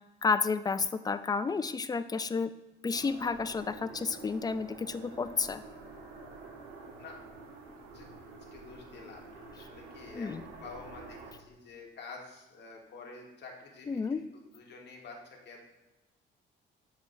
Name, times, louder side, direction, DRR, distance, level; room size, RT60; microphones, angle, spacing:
voice 1, 0.2-2.5 2.8-5.6 10.1-10.4 13.9-14.2, left 4 dB, 20° left, 12 dB, 0.3 m, -31 dB
sound 1, 2.9-11.3, right 3 dB, 85° right, 1.3 m, -48 dB
voice 2, 8.5-14.2 14.5-15.6, left 4 dB, 60° left, 0 dB, 1.4 m, -49 dB
7.1 x 5.6 x 2.6 m, 1.0 s
cardioid pair, 90°, 20 cm